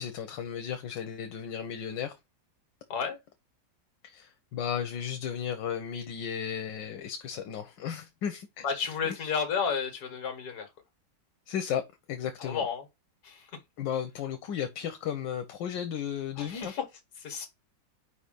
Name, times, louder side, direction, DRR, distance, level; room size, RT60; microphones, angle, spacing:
voice 1, 0.0-2.2 4.0-8.6 9.2-9.3 11.5-11.8 12.1-12.6 13.8-16.7, left 8 dB, 85° left, 1.5 m, -34 dB
voice 2, 8.6-10.7 12.4-12.8 13.2-13.5 16.4-16.8 17.2-17.5, left 6 dB, 60° left, 2.0 m, -32 dB
5.0 x 4.1 x 5.1 m
omnidirectional pair, 1.9 m